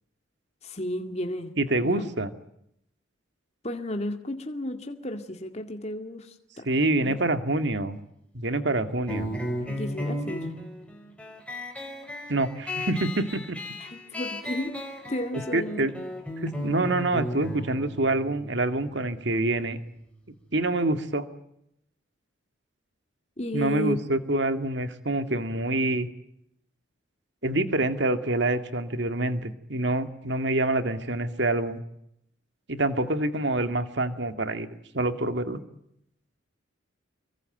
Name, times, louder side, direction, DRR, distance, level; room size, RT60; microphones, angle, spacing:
voice 1, 0.6-1.5 1.8-2.0 3.6-6.7 7.0-7.2 9.7-10.5 13.8-14.8 15.1-15.9 23.4-24.0, left 1 dB, 30° left, 5 dB, 2.1 m, -33 dB
voice 2, 1.6-2.3 6.7-8.0 8.3-9.3 12.3-13.6 15.5-15.9 16.4-19.8 20.5-21.3 23.5-26.1 27.4-31.8 32.7-34.7 34.9-35.6, right 2 dB, 60° right, 9 dB, 2.1 m, -26 dB
sound 1, 9.1-20.2, left 1 dB, 5° left, 4.9 m, -35 dB
26.5 x 23.5 x 9.0 m, 0.77 s
head